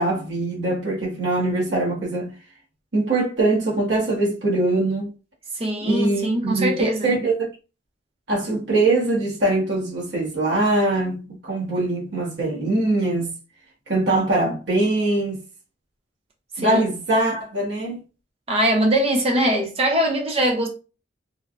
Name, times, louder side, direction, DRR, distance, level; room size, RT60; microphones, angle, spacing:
voice 1, 0.0-2.3 2.9-5.1 5.8-7.5 8.3-13.3 13.9-15.4 16.6-18.0, right 2 dB, 75° right, 1.2 m, -22 dB
voice 2, 5.6-7.2 16.6-16.8 18.5-20.7, right 1 dB, 30° right, 0.7 m, -22 dB
3.2 x 2.2 x 2.5 m
head